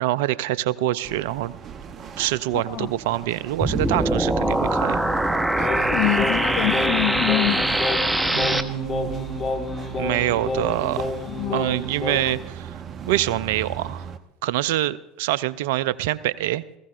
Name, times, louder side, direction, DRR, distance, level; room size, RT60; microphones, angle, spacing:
voice 1, 0.0-1.5 2.2-5.0 8.3-9.5 10.0-11.0 11.5-12.8 13.1-14.0 14.4-16.6, right 15 dB, 70° right, 0.4 m, -25 dB
sound 1, 1.0-14.2, right 7 dB, 40° right, 0.9 m, -39 dB
sound 2, 3.6-8.6, right 1 dB, 10° right, 1.0 m, -22 dB
voice 2, 5.6-7.8 11.3-11.7, left 17 dB, 60° left, 0.5 m, -25 dB
Singing, 5.6-12.4, left 3 dB, 40° left, 1.8 m, -30 dB
19.5 x 15.0 x 2.5 m
hypercardioid pair, 70°, 0 cm